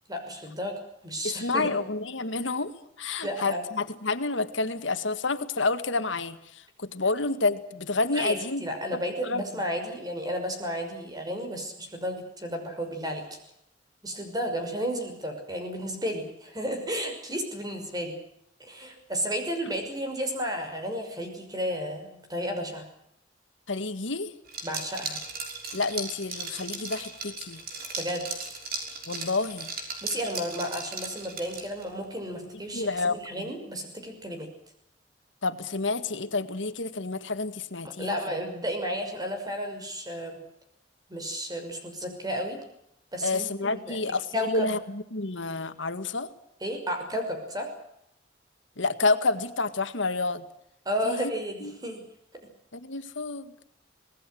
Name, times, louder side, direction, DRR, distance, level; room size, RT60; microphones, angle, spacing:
voice 1, 0.1-1.7 3.2-3.6 8.1-13.4 14.0-18.2 18.6-22.9 24.6-25.2 28.0-28.5 30.0-34.5 37.8-40.4 41.1-42.6 43.1-44.0 44.3-44.7 46.6-47.7 50.9-52.0, equal, 20° right, 5 dB, 6.0 m, -32 dB
voice 2, 1.2-8.6 9.2-9.4 23.7-24.4 25.7-27.6 29.1-29.7 32.7-33.5 35.4-38.2 43.2-46.3 48.8-50.4 51.0-51.3 51.6-51.8 52.7-53.5, left 3 dB, 80° left, 10 dB, 1.9 m, -29 dB
Liquid, 24.5-31.9, right 4 dB, 50° right, 5.9 m, -37 dB
25.5 x 19.0 x 7.9 m, 0.79 s
head